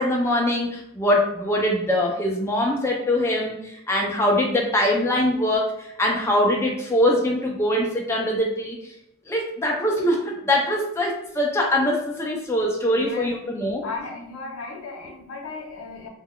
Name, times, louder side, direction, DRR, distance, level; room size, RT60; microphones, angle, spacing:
voice 1, 0.0-5.7 6.0-8.8 9.3-13.8, left 1 dB, 10° left, -1 dB, 0.3 m, -22 dB
voice 2, 12.9-13.3 13.8-16.1, left 3 dB, 80° left, 1 dB, 0.6 m, -35 dB
2.2 x 2.1 x 3.6 m, 0.78 s
head